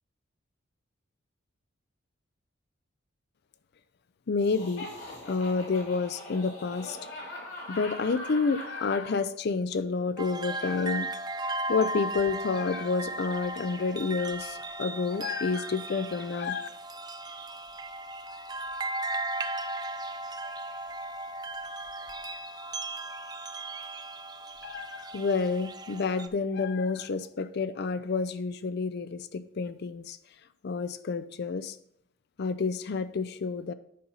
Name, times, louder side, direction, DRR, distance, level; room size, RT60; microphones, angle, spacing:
voice 1, 4.3-4.9 5.2-7.0 7.7-11.1 11.7-16.7 24.6-30.2 30.6-31.8 32.4-33.7, left 4 dB, 55° left, 14 dB, 0.4 m, -29 dB
Laughter, 4.4-9.2, left 1 dB, 75° left, 2.8 m, -42 dB
sound 1, 10.2-26.3, right 2 dB, 20° right, 0.4 m, -36 dB
8.5 x 5.5 x 4.0 m, 0.71 s
head